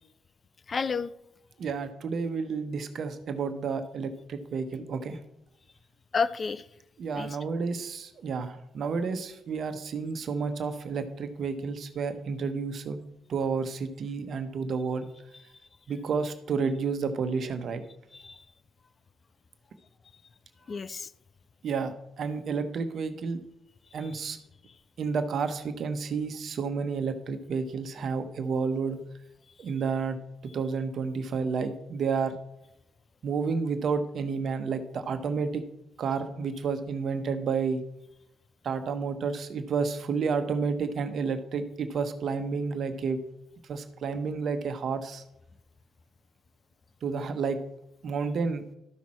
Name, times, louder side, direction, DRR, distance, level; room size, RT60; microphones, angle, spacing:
voice 1, 0.7-1.1 6.1-6.7 7.1-7.4 15.3-15.4 18.1-18.4 20.7-21.1 24.0-24.2, left 5 dB, 45° left, 16 dB, 0.5 m, -31 dB
voice 2, 1.6-5.2 7.0-13.0 13.3-15.1 15.9-17.8 21.6-23.4 23.9-24.4 25.0-29.0 29.6-30.2 30.5-32.3 33.2-35.6 36.0-37.8 38.6-43.2 43.7-45.2 47.0-47.6 48.0-48.6, right 5 dB, 60° right, 9 dB, 1.1 m, -30 dB
13.0 x 6.1 x 4.3 m, 0.83 s
hypercardioid pair, 50°, 0 cm